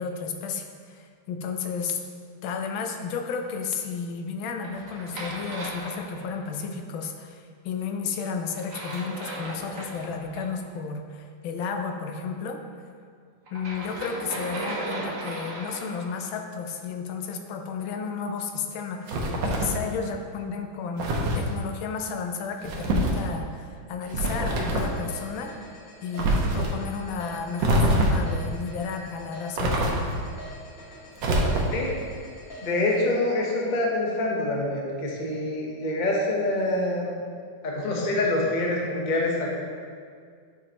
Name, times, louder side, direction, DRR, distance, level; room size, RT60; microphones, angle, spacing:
voice 1, 0.0-2.0 2.4-12.6 13.5-25.5 26.0-30.0, left 5 dB, 85° left, 4 dB, 1.4 m, -33 dB
sound 1, 4.6-6.6 8.5-10.4 13.5-16.1, right 2 dB, 50° right, 1.2 m, -36 dB
sound 2, 19.1-19.8 21.0-21.4 22.6-23.2 24.1-25.0 26.2-26.7 27.6-28.3 29.6-30.3 31.2-31.9, right 1 dB, 75° right, 1.6 m, -24 dB
sound 3, 24.6-33.0, equal, 70° left, 2.4 m, -45 dB
voice 2, 32.6-37.1 37.6-39.5, left 2 dB, 35° left, -2 dB, 0.8 m, -26 dB
9.5 x 5.3 x 2.9 m, 2.1 s
omnidirectional pair, 2.1 m